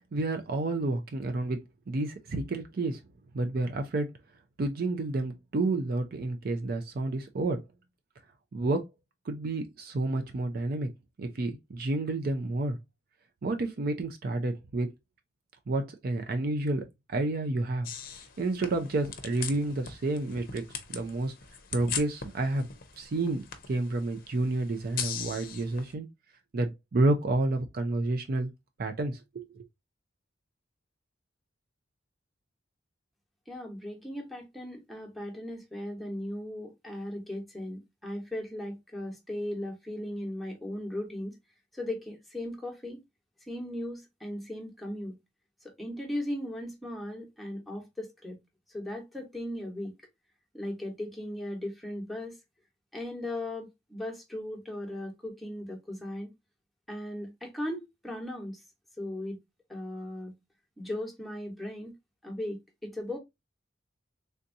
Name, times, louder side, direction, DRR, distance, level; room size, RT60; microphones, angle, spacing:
voice 1, 0.1-1.6 1.9-3.0 3.3-4.1 4.6-7.6 8.5-8.9 9.3-10.9 11.2-12.8 13.4-14.9 15.7-17.9 18.4-20.6 20.9-21.3 21.7-22.7 23.0-26.1 26.5-28.5 28.8-29.6, right 2 dB, 50° right, 0.4 m, -30 dB
sound 1, 17.8-25.9, left 7 dB, 50° left, 0.6 m, -40 dB
voice 2, 33.5-41.4 41.7-43.0 43.4-45.1 45.6-48.4 48.7-49.9 50.5-52.4 52.9-56.3 56.9-58.6 59.0-59.4 59.7-60.3 60.8-61.9 62.2-63.2, left 1 dB, ahead, 1.0 m, -37 dB
3.4 x 2.7 x 2.5 m
head